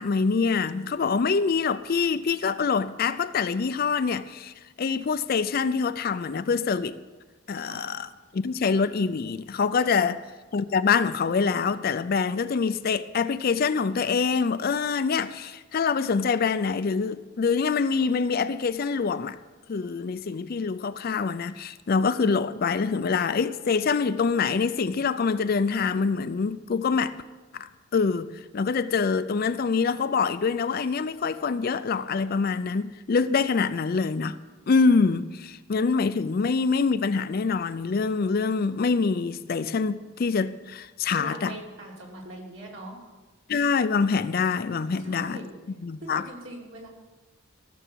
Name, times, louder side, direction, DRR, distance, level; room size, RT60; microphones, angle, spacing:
voice 1, 0.0-4.5 4.8-7.0 7.5-10.2 10.5-19.4 19.7-27.1 27.5-28.3 28.5-34.4 34.7-41.5 43.5-45.4 45.8-46.2, left 5 dB, 45° left, 0.4 m, -25 dB
voice 2, 7.6-7.9 10.0-10.1 41.1-43.2 45.0-45.5 46.0-46.9, right 1 dB, 60° right, 3.0 m, -42 dB
15.5 x 7.0 x 6.2 m
head